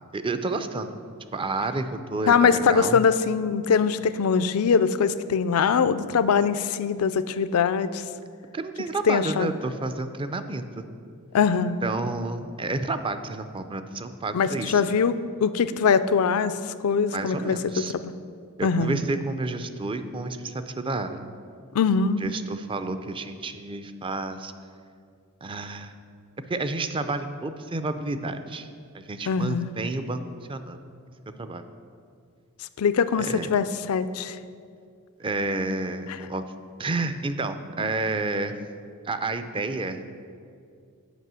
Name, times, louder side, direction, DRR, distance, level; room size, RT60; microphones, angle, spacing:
voice 1, 0.1-1.0 1.3-3.0 8.5-10.8 11.8-14.8 17.1-17.9 18.6-21.2 22.2-24.5 25.4-25.9 26.5-28.7 28.9-30.2 30.5-30.8 31.4-31.7 33.2-33.5 35.2-36.4 36.8-38.5 39.1-40.3, right 2 dB, 25° right, 9 dB, 0.4 m, -30 dB
voice 2, 2.3-8.0 9.0-9.5 11.3-11.8 14.3-15.2 15.4-18.1 18.6-19.0 21.7-22.2 29.3-29.7 32.8-34.4 37.8-37.9, left 6 dB, 70° left, 13 dB, 0.4 m, -22 dB
8.3 x 5.5 x 7.5 m, 2.3 s
head